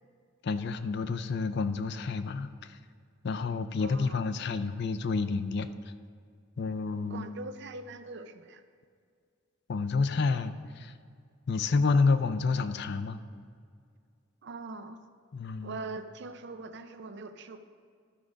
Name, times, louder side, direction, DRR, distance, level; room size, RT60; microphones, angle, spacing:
voice 1, 0.4-2.8 3.2-5.7 6.6-7.3 9.7-10.9 11.5-13.2 15.3-15.8, left 4 dB, 55° left, 11 dB, 0.4 m, -29 dB
voice 2, 3.8-4.2 7.1-8.6 14.4-15.0 15.6-17.6, right 3 dB, 60° right, 9 dB, 0.5 m, -42 dB
13.0 x 4.8 x 5.1 m, 2.2 s
head